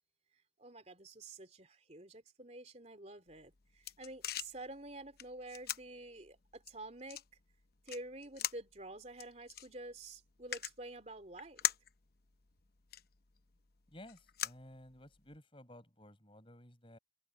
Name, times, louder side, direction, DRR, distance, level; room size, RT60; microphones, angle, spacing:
voice 1, 0.6-7.2 7.8-11.6, right 2 dB, 35° right, 3.4 m, -49 dB
sound 1, 3.3-15.4, left 11 dB, 55° left, 0.8 m, -44 dB
voice 2, 13.9-17.0, left 1 dB, 30° left, 6.3 m, -55 dB
head